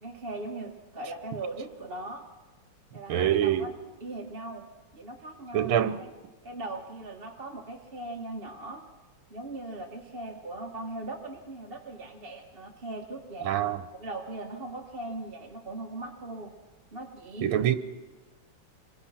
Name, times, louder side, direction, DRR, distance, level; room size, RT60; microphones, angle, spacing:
voice 1, 0.0-2.2 2.9-3.7 4.0-4.7 4.9-6.1 6.4-8.8 9.3-13.5 13.9-16.5 16.9-17.5, right 2 dB, 30° right, 1.7 m, -39 dB
voice 2, 3.1-3.7 5.5-6.0 13.5-13.8 17.4-17.7, right 10 dB, 80° right, 1.8 m, -24 dB
27.0 x 23.0 x 5.9 m
omnidirectional pair, 2.2 m